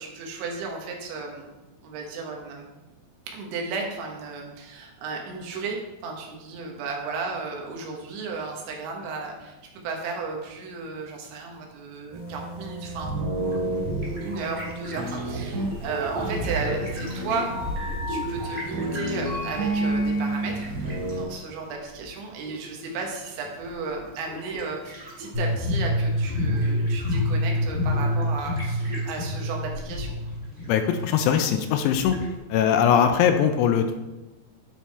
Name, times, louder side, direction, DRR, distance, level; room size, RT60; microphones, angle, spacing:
voice 1, 0.0-1.6 1.8-2.8 3.3-9.6 9.8-17.5 17.9-30.2, right 4 dB, 85° right, 1 dB, 3.6 m, -34 dB
sound 1, 12.1-21.3, right 2 dB, 55° right, 1.8 m, -30 dB
sound 2, 13.3-32.4, equal, 35° right, 0.8 m, -39 dB
sound 3, 25.3-31.3, left 1 dB, 5° right, 1.0 m, -27 dB
voice 2, 30.7-32.1 32.5-34.0, left 8 dB, 80° left, 7 dB, 2.6 m, -21 dB
11.0 x 4.6 x 4.2 m, 1.1 s
omnidirectional pair, 5.2 m